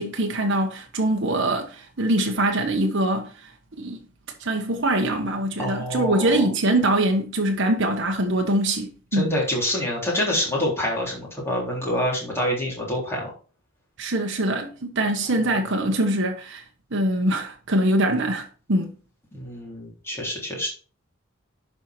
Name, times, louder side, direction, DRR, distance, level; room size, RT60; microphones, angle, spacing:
voice 1, 0.0-4.0 4.4-9.3 14.0-16.6 16.9-18.9, right 1 dB, 55° right, 1.2 m, -23 dB
voice 2, 5.6-6.5 9.1-13.3 19.3-20.7, left 1 dB, 10° left, 3.6 m, -26 dB
11.0 x 4.6 x 4.4 m
head